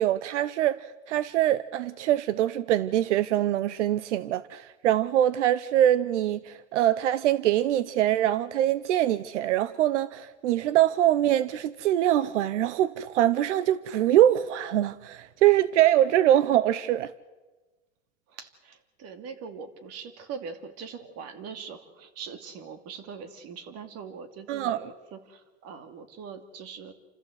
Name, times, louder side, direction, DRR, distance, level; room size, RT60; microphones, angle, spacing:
voice 1, 0.0-17.1 24.5-24.8, right 12 dB, 85° right, 0.8 m, -23 dB
voice 2, 18.3-26.9, right 6 dB, 45° right, 2.6 m, -42 dB
29.0 x 14.5 x 8.0 m
supercardioid pair, 125°, 35 cm